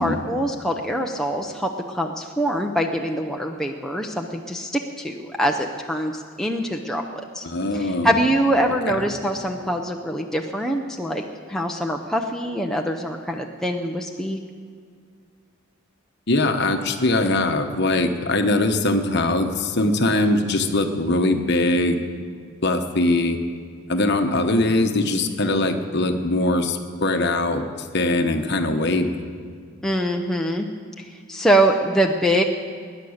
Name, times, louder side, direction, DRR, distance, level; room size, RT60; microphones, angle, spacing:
voice 1, 0.0-7.5 7.7-11.2 11.5-14.4 29.8-30.7 31.3-32.4, right 1 dB, ahead, 1 dB, 0.6 m, -24 dB
voice 2, 7.4-8.2 8.9-9.0 16.3-22.0 22.6-23.4 23.9-27.7 27.9-29.2, left 2 dB, 50° left, 6 dB, 1.1 m, -21 dB
20.0 x 9.9 x 6.5 m, 2.1 s
head